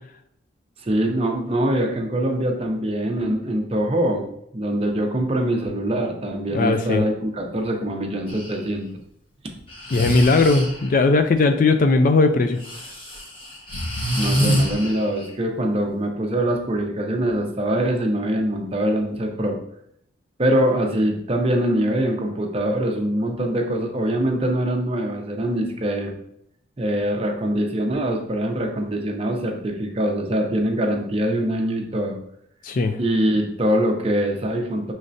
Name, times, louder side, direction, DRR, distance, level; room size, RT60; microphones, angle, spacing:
voice 1, 0.8-4.2 4.5-8.9 14.2-19.6 20.4-26.1 26.8-32.2 33.0-34.9, right 1 dB, 30° right, 2 dB, 0.6 m, -23 dB
voice 2, 6.5-7.0 9.9-12.6 32.6-33.0, left 3 dB, 45° left, 8 dB, 0.4 m, -18 dB
Breathing, 8.3-8.5 9.7-10.9 12.6-15.3, equal, 30° left, 1.0 m, -26 dB
6.3 x 3.2 x 2.7 m, 0.72 s
head